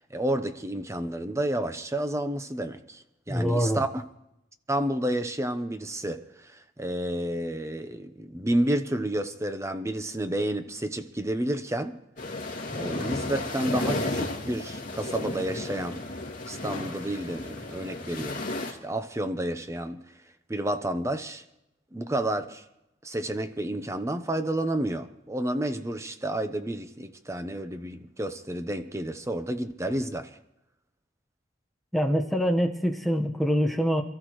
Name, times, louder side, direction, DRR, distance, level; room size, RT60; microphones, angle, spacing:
voice 1, 0.1-4.0 4.7-12.0 12.7-16.0 16.5-18.4 18.7-20.0 20.5-21.4 21.9-22.6 23.0-30.4, right 1 dB, 15° right, 0.9 m, -30 dB
voice 2, 3.3-3.8 31.9-34.0, equal, ahead, 1.3 m, -25 dB
sound 1, 12.2-18.7, left 2 dB, 40° left, 2.6 m, -33 dB
27.5 x 13.5 x 3.2 m
head